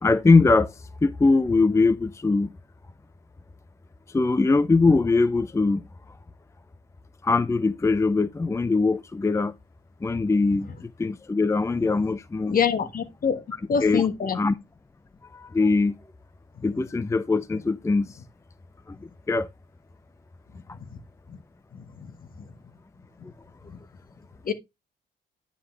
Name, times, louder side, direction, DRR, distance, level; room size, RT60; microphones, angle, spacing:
voice 1, 0.0-2.5 4.1-5.9 7.2-9.5 10.0-12.6 13.8-14.1 14.3-14.5 15.2-16.0 16.6-18.2 18.9-19.5, left 3 dB, 15° left, 0.5 m, -22 dB
voice 2, 12.5-13.4 13.7-14.4 16.6-16.7 21.3-21.4 22.0-22.1 23.7-23.8 24.4-24.5, left 7 dB, 45° left, 1.4 m, -25 dB
9.8 x 4.8 x 3.3 m
cardioid pair, 90°, 20 cm